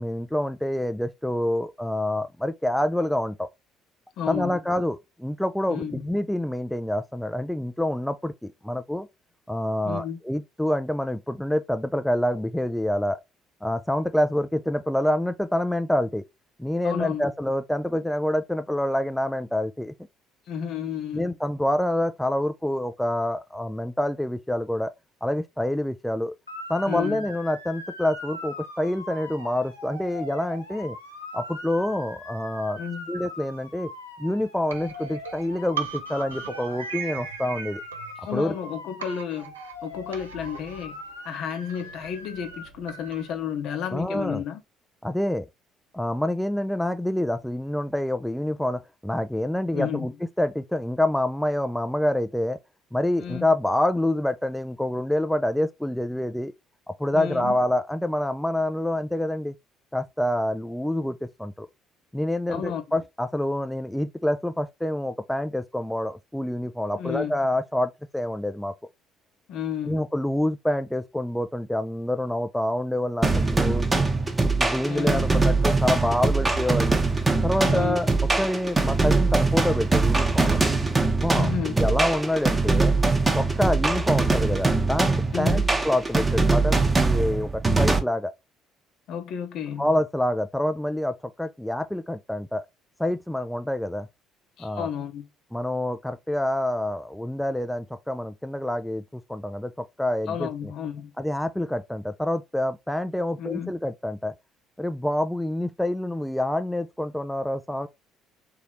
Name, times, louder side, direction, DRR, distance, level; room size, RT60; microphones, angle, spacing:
voice 1, 0.0-3.5 4.3-9.1 9.5-13.2 13.6-16.2 16.6-19.9 21.1-24.9 25.2-26.3 26.7-31.0 31.3-32.8 33.1-33.9 34.2-37.8 38.3-38.5 43.9-44.4 45.0-45.5 45.9-50.1 50.4-52.6 52.9-56.5 57.0-59.5 59.9-61.7 62.1-68.7 69.9-73.9 74.4-77.0 77.4-78.1 78.4-80.6 81.2-82.9 83.3-88.3 89.8-92.7 93.0-94.1 94.6-94.9 95.5-99.7 100.0-100.7 101.2-104.3 104.8-107.9, left 1 dB, 5° left, 0.3 m, -27 dB
voice 2, 4.2-4.7 5.7-6.1 9.8-10.2 16.8-17.3 20.5-21.4 26.9-27.2 32.8-33.1 38.2-39.6 39.8-41.0 41.2-44.6 49.7-50.1 53.2-53.4 57.1-57.6 62.5-62.8 67.0-67.4 69.5-70.1 74.9-75.3 77.6-78.0 81.3-81.7 85.3-85.7 89.1-89.9 94.6-95.3 100.3-101.1 103.4-103.7, left 8 dB, 55° left, 0.7 m, -32 dB
Motor vehicle (road) / Siren, 26.5-42.7, left 1 dB, 90° left, 0.9 m, -41 dB
sound 1, 34.7-38.7 39.0-43.4, right 6 dB, 80° right, 0.5 m, -39 dB
sound 2, 73.2-88.0, right 3 dB, 20° right, 0.8 m, -22 dB
3.9 x 2.8 x 3.0 m
figure-of-eight pair, 50°, 0 cm